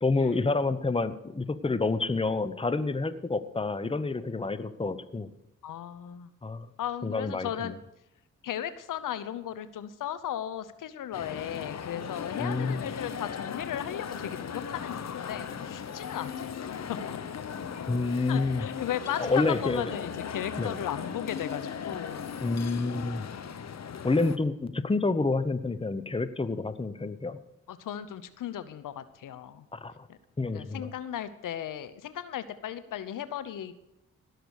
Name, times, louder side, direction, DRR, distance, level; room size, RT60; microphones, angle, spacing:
voice 1, 0.0-5.3 6.4-6.7 7.0-7.8 12.4-12.9 17.9-18.7 19.2-19.9 20.6-20.8 22.4-23.3 24.0-27.4 29.7-29.9 30.4-30.9, left 3 dB, 15° left, 13 dB, 0.9 m, -28 dB
voice 2, 5.6-6.3 6.8-7.8 8.4-17.2 18.3-19.3 19.6-22.3 27.7-29.6 30.5-33.8, left 10 dB, 80° left, 14 dB, 0.8 m, -36 dB
sound 1, 11.1-24.4, left 7 dB, 55° left, 1.0 m, -37 dB
17.5 x 6.8 x 6.4 m, 0.90 s
cardioid pair, 60°, 31 cm